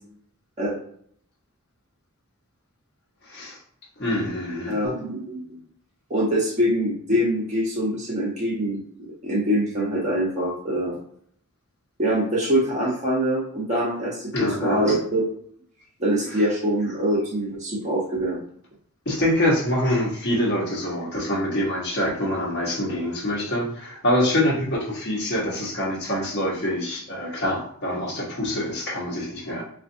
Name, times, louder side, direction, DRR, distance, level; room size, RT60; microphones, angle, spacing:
voice 1, 3.3-3.6 4.0-4.8 14.3-15.0 19.1-29.6, left 1 dB, 50° left, -3 dB, 1.1 m, -25 dB
voice 2, 4.7-5.6 6.1-8.8 9.2-11.0 12.0-15.3 16.0-18.4, equal, 35° right, -6 dB, 0.9 m, -24 dB
3.9 x 2.5 x 2.6 m, 0.63 s
head